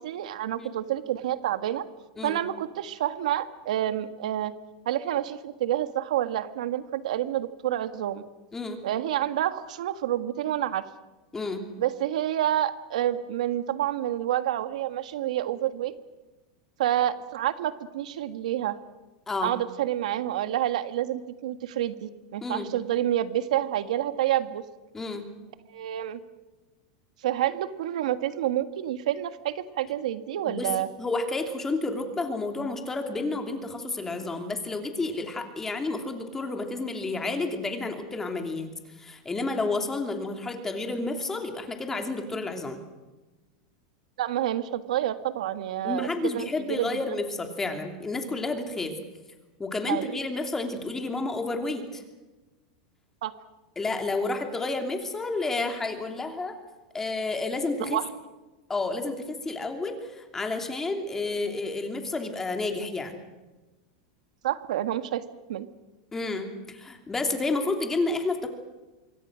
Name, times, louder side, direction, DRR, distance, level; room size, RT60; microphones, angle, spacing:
voice 1, 0.0-1.8 2.2-4.5 4.8-8.2 8.8-10.8 11.8-15.9 16.8-18.8 19.4-24.6 25.7-26.2 27.2-30.9 44.2-46.1 46.3-47.2 49.9-50.1 53.2-53.3 57.8-58.1 64.4-65.2 65.5-65.7, right 12 dB, 80° right, 11 dB, 1.6 m, -28 dB
voice 2, 8.5-8.8 11.3-11.6 19.3-19.5 22.4-22.7 24.9-25.3 30.4-30.7 31.0-42.8 45.8-48.9 49.6-52.0 53.8-56.6 56.9-58.0 58.7-63.2 66.1-68.5, left 3 dB, 10° left, 5 dB, 2.9 m, -30 dB
26.0 x 24.0 x 6.4 m, 1.1 s
supercardioid pair, 160°, 4 cm